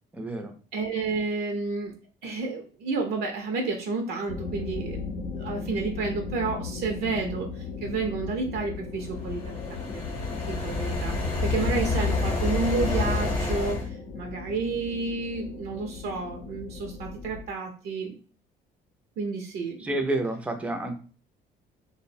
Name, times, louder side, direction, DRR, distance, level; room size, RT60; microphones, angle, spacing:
voice 1, 0.1-0.5 11.7-11.8 19.8-20.9, right 2 dB, 10° right, 5 dB, 0.4 m, -29 dB
voice 2, 0.7-1.9 2.2-5.1 5.4-9.6 9.9-10.1 10.5-18.1 19.2-20.1, right 4 dB, 70° right, 2 dB, 0.5 m, -31 dB
sound 1, 4.3-17.4, left 4 dB, 85° left, 0.6 m, -37 dB
sound 2, 9.2-13.9, left 3 dB, 35° left, 0.7 m, -28 dB
2.4 x 2.0 x 2.6 m, 0.38 s
cardioid pair, 110°, 17 cm